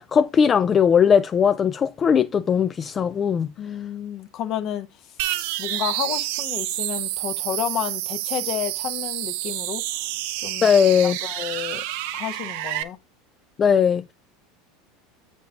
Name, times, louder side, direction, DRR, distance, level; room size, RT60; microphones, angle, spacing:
voice 1, 0.0-3.5 10.6-11.2 13.6-14.1, left 7 dB, 30° left, 0.4 m, -19 dB
voice 2, 3.6-4.9 5.6-9.8 10.4-10.7 11.0-11.8 12.1-13.0, left 10 dB, 50° left, 1.0 m, -31 dB
sound 1, 5.2-12.8, right 16 dB, 65° right, 0.6 m, -29 dB
7.9 x 5.3 x 3.8 m
hypercardioid pair, 80°, 0 cm